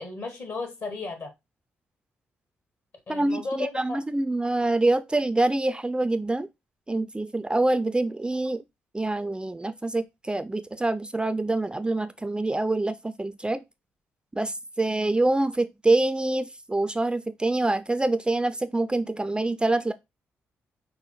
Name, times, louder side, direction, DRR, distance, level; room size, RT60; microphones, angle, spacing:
voice 1, 0.0-1.3 3.1-4.0, left 3 dB, 55° left, 1.5 m, -34 dB
voice 2, 3.1-6.5 6.9-8.6 8.9-13.6 14.3-19.9, right 2 dB, 15° right, 0.4 m, -25 dB
5.5 x 2.0 x 3.8 m
hypercardioid pair, 45°, 6 cm